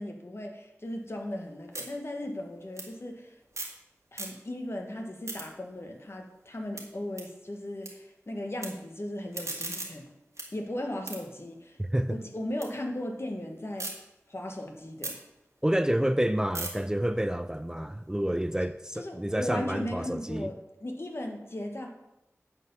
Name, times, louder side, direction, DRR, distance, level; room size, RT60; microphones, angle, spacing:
voice 1, 0.0-3.3 4.1-10.1 10.4-11.8 12.1-14.0 14.3-15.2 18.9-21.9, left 1 dB, 55° left, 2 dB, 1.5 m, -37 dB
sound 1, 0.9-4.7 5.0-7.9 8.2-8.7 9.1-12.7 13.1-13.9 14.4-18.5, right 2 dB, 75° right, 2.0 m, -42 dB
voice 2, 11.8-12.2 15.6-20.5, right 1 dB, 10° right, 11 dB, 0.4 m, -29 dB
9.6 x 4.6 x 7.2 m, 0.92 s
wide cardioid pair, 40°, 5 cm